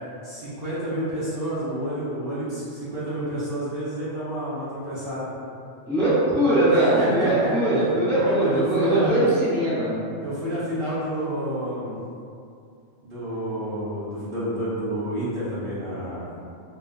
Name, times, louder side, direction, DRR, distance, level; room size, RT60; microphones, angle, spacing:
voice 1, 0.2-5.3 6.7-7.9 8.2-9.3 10.2-11.9 13.0-16.4, equal, 50° right, -12 dB, 1.0 m, -29 dB
voice 2, 5.9-9.9, right 1 dB, ahead, -13 dB, 0.8 m, -21 dB
3.1 x 2.9 x 2.4 m, 2.5 s
omnidirectional pair, 1.4 m